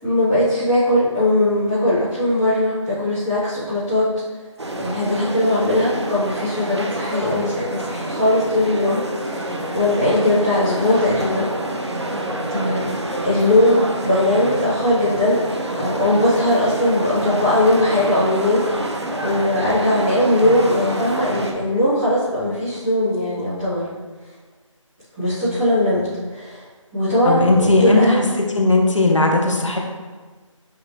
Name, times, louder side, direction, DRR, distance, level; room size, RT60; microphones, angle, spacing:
voice 1, 0.0-4.1 4.8-11.5 12.0-12.1 12.5-12.9 13.2-15.4 15.7-23.8 25.2-26.0 26.3-26.6 26.9-28.3, left 1 dB, 5° right, -23 dB, 1.5 m, -19 dB
sound 1, 4.6-21.5, right 1 dB, 55° right, 0.9 m, -27 dB
voice 2, 27.2-28.2 28.5-29.8, left 2 dB, 65° left, 2 dB, 1.2 m, -17 dB
8.7 x 3.8 x 3.2 m, 1.4 s
figure-of-eight pair, 180°, 17 cm